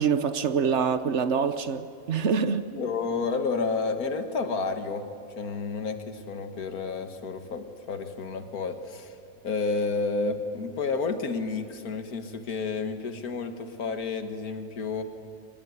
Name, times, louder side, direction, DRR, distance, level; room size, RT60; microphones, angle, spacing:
voice 1, 0.0-2.7, right 6 dB, 55° right, 1.1 m, -25 dB
voice 2, 2.7-5.1 5.4-9.2 9.4-15.0, left 4 dB, 85° left, 2.0 m, -30 dB
23.0 x 19.5 x 9.6 m
omnidirectional pair, 1.5 m